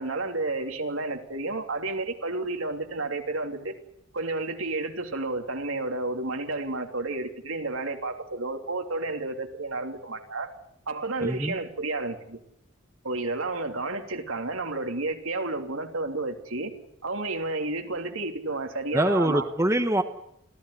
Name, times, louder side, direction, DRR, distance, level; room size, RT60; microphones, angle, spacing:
voice 1, 0.0-3.7 4.1-10.5 10.9-12.4 13.0-16.7 17.0-19.4, right 2 dB, 80° right, 5 dB, 3.1 m, -31 dB
voice 2, 11.2-11.6 18.9-20.0, right 1 dB, 15° right, 7 dB, 1.2 m, -24 dB
26.5 x 15.5 x 9.8 m, 0.76 s
head